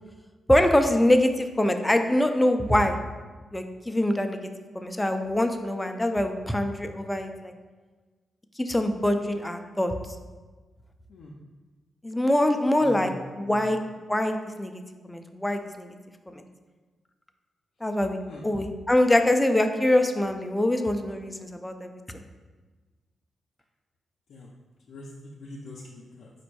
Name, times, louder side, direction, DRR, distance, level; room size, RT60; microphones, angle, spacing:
voice 1, 0.5-3.0 3.5-4.4 4.7-7.5 8.6-9.9 12.0-13.1 13.4-13.8 14.1-16.0 16.3-16.4 17.8-18.2 18.4-22.2, left 1 dB, 10° left, 6 dB, 0.4 m, -24 dB
voice 2, 12.8-13.1 13.5-13.7 18.3-18.5 24.3-24.5 24.9-26.3, left 1 dB, 80° left, -3 dB, 0.4 m, -42 dB
4.2 x 2.6 x 4.6 m, 1.3 s
cardioid pair, 80°, 0 cm